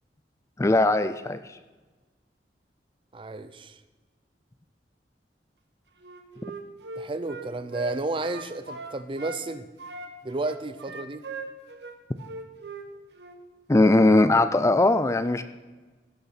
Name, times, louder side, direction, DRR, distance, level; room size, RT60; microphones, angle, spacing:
voice 1, 0.6-1.4 13.7-15.4, left 2 dB, 15° left, 12 dB, 0.4 m, -19 dB
voice 2, 3.1-3.8 7.0-9.7 10.2-11.2, right 2 dB, 30° right, 12 dB, 0.6 m, -32 dB
Wind instrument woodwind instrument, 6.0-9.4 9.8-12.9 13.2-13.4, right 4 dB, 70° right, 1.3 m, -39 dB
16.0 x 6.8 x 5.9 m, 1.3 s
head